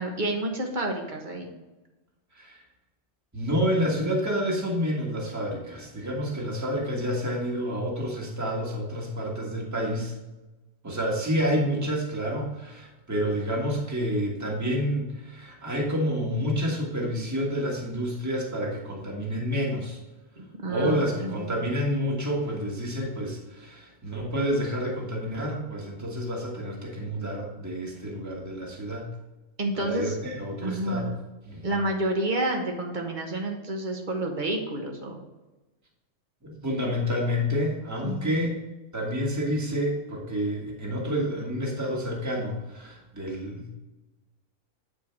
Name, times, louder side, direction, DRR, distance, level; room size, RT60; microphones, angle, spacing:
voice 1, 0.0-1.5 20.4-21.5 29.6-30.2 30.6-31.2 31.6-35.2 38.0-38.6, right 1 dB, 40° right, 2 dB, 1.3 m, -30 dB
voice 2, 3.3-10.1 10.8-20.0 20.7-29.1 29.7-31.1 31.4-31.8 36.4-38.6 38.9-43.7, equal, 15° right, -2 dB, 1.6 m, -29 dB
8.9 x 4.6 x 4.5 m, 1.1 s
omnidirectional pair, 1.3 m